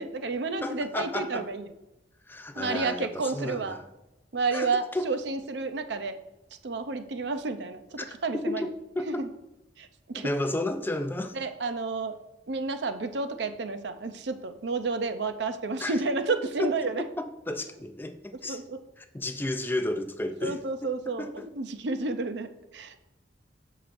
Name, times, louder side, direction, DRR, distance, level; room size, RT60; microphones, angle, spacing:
voice 1, 0.0-1.7 2.6-3.8 4.3-6.2 6.6-7.8 8.1-8.7 9.1-9.3 9.8-10.3 11.3-12.2 12.5-17.0 18.5-18.8 20.4-23.0, right 3 dB, 65° right, 9 dB, 0.6 m, -31 dB
voice 2, 0.6-1.5 2.3-3.9 4.5-5.1 8.0-8.1 8.3-9.3 10.1-11.4 15.8-16.0 16.6-16.7 17.2-18.6 19.0-20.9 21.2-21.5, left 1 dB, 10° left, 7 dB, 0.4 m, -32 dB
13.0 x 5.0 x 2.6 m, 0.96 s
head